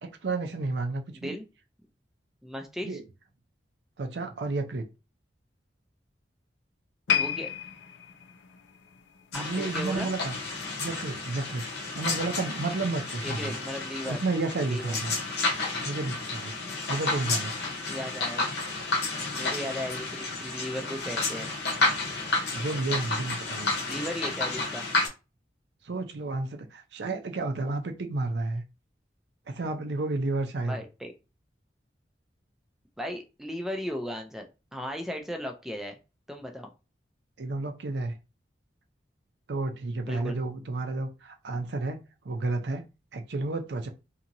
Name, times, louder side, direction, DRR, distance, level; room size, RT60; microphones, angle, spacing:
voice 1, 0.0-1.3 2.8-3.0 4.0-4.9 9.3-10.3 10.8-11.6 11.9-13.5 14.1-15.2 15.8-16.6 16.9-17.5 22.5-23.7 25.8-28.6 29.5-30.8 37.4-38.2 39.5-42.8 43.1-43.9, right 3 dB, 70° right, 0.5 m, -31 dB
voice 2, 2.4-3.0 7.2-7.5 9.3-10.1 13.2-14.2 14.6-15.0 17.9-18.5 19.3-21.5 23.9-24.9 30.6-31.1 33.0-36.0 36.3-36.7 40.1-40.4, equal, ahead, 0.3 m, -36 dB
sound 1, 7.1-10.4 10.7-11.0 11.6-11.7, left 9 dB, 85° left, 0.5 m, -32 dB
sound 2, 9.3-25.1, left 3 dB, 65° left, 0.9 m, -31 dB
2.8 x 2.7 x 2.6 m
head